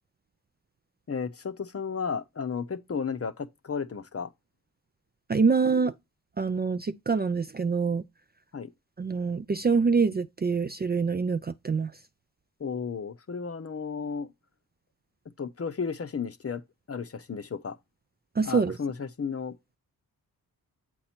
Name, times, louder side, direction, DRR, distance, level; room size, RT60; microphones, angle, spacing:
voice 1, 1.1-4.3 8.5-8.7 12.6-14.3 15.4-16.6 16.9-17.8 18.5-19.6, left 6 dB, 40° left, 0.7 m, -33 dB
voice 2, 5.3-5.9 6.4-8.0 9.0-11.9 18.4-18.8, right 5 dB, 25° right, 0.4 m, -25 dB
7.8 x 4.3 x 4.3 m
cardioid pair, 60°, 39 cm